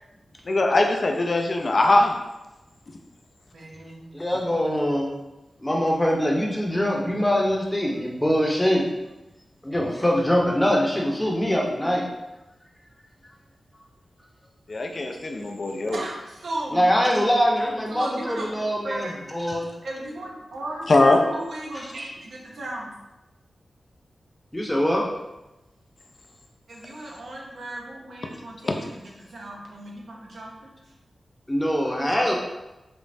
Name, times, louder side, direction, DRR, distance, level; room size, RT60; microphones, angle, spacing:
voice 1, 0.5-2.1 14.7-16.0 20.9-21.2 28.6-28.8, left 2 dB, 55° left, 3 dB, 0.5 m, -21 dB
voice 2, 3.5-4.2 14.9-15.0 15.9-16.8 17.9-19.1 19.8-23.0 26.7-30.7, right 1 dB, 85° right, -3 dB, 0.6 m, -35 dB
voice 3, 4.1-5.1 5.6-8.8 9.6-12.1 16.7-19.7 21.7-21.9 24.5-25.0 31.5-32.3, equal, 15° left, -2 dB, 0.8 m, -23 dB
5.2 x 2.0 x 2.6 m, 1.0 s
cardioid pair, 50°, 0 cm